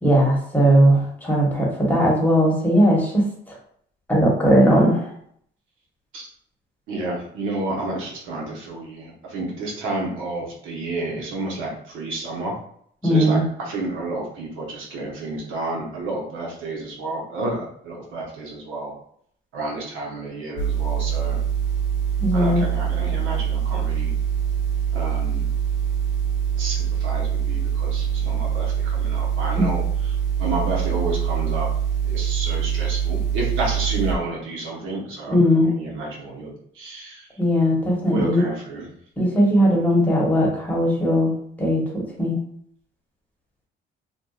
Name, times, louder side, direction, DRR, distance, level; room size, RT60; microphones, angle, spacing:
voice 1, 0.0-3.6 4.1-5.1 13.0-13.4 22.2-22.6 29.6-29.7 35.3-35.7 37.4-38.4 39.2-42.4, equal, 10° left, -4 dB, 1.0 m, -18 dB
voice 2, 6.9-12.5 13.1-18.9 19.5-21.4 22.3-24.1 24.9-25.5 26.6-29.8 30.4-31.7 32.0-37.2 38.1-38.9, right 2 dB, 90° right, -2 dB, 0.8 m, -30 dB
sound 1, 20.6-34.1, right 8 dB, 65° left, 0.6 m, -24 dB
2.6 x 2.2 x 2.3 m, 0.65 s
cardioid pair, 90°, 20 cm